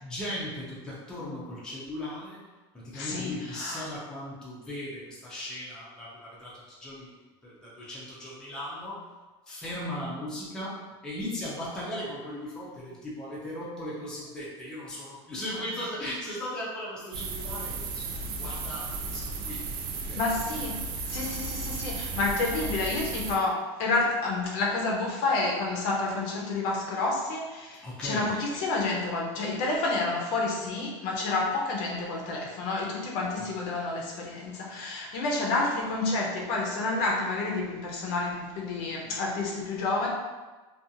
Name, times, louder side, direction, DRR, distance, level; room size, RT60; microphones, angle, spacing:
voice 1, 0.0-2.4 2.7-6.5 6.8-7.1 7.4-9.0 9.5-19.6 19.9-20.2 27.8-28.3 33.4-33.5, left 1 dB, 5° left, -7 dB, 0.5 m, -37 dB
voice 2, 2.9-3.9 20.2-20.8 21.1-40.1, left 3 dB, 50° left, -2 dB, 0.6 m, -29 dB
sound 1, 17.1-23.4, right 4 dB, 60° right, 0.4 m, -34 dB
2.5 x 2.3 x 2.7 m, 1.3 s
supercardioid pair, 160°, 13 cm